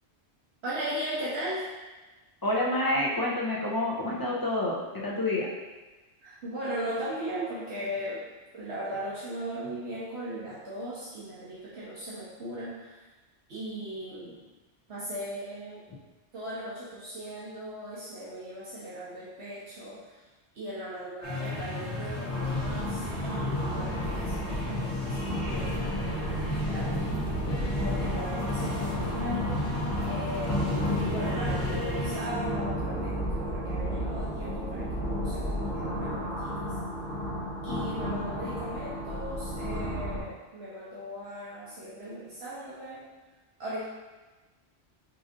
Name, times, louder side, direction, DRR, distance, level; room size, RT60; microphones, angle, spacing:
voice 1, 0.6-1.6 6.2-8.2 8.5-13.0 13.5-14.4 14.9-15.8 16.3-20.2 20.5-26.4 26.7-27.0 27.8-29.5 30.0-36.6 37.6-43.0 43.6-43.8, equal, 75° right, -9 dB, 1.1 m, -38 dB
voice 2, 2.4-5.5, left 1 dB, 30° left, -4 dB, 0.4 m, -28 dB
sound 1, 21.2-32.2, left 3 dB, 80° left, 1.3 m, -34 dB
sound 2, 22.3-40.2, equal, 50° left, 1.5 m, -32 dB
5.3 x 2.6 x 2.5 m, 1.2 s
omnidirectional pair, 1.1 m